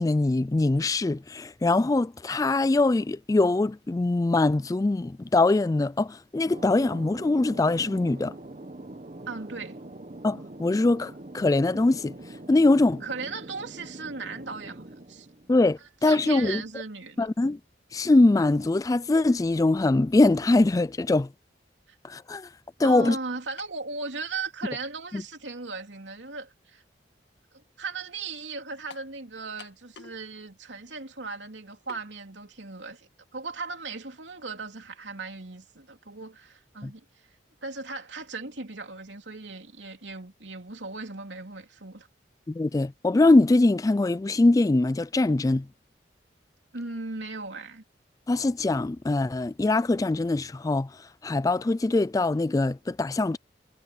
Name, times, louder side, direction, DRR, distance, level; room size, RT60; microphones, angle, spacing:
voice 1, 0.0-8.3 10.2-12.1 12.5-13.0 15.5-16.6 17.2-17.6 17.9-21.3 22.0-22.5 22.8-23.2 25.1-25.2 36.8-36.9 42.5-45.7 48.3-50.9 51.2-53.4, left 2 dB, 20° left, 0.3 m, -22 dB
Thunder, 6.5-15.8, right 1 dB, 40° right, 1.1 m, -43 dB
voice 2, 9.3-9.8 13.0-15.3 15.8-17.3 22.8-26.8 27.8-37.0 37.6-42.1 46.7-47.8, right 4 dB, 80° right, 3.1 m, -37 dB
sound 1, 23.6-23.9 24.8-24.9 28.9-29.1 29.6-30.2 30.5-30.6 31.9-32.1, left 4 dB, 70° left, 1.7 m, -47 dB
head